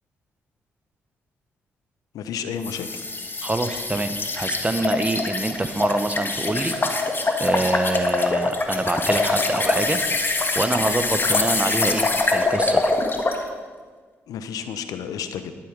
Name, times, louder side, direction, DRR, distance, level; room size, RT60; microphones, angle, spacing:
voice 1, 2.1-3.0 14.3-15.5, left 7 dB, 75° left, 10 dB, 0.8 m, -31 dB
sound 1, 2.6-13.4, left 3 dB, 35° left, 1.6 m, -24 dB
voice 2, 3.4-6.7 7.4-10.0 10.5-12.9, right 2 dB, 20° right, 9 dB, 1.2 m, -25 dB
11.0 x 9.5 x 5.3 m, 1.5 s
hypercardioid pair, 45°, 6 cm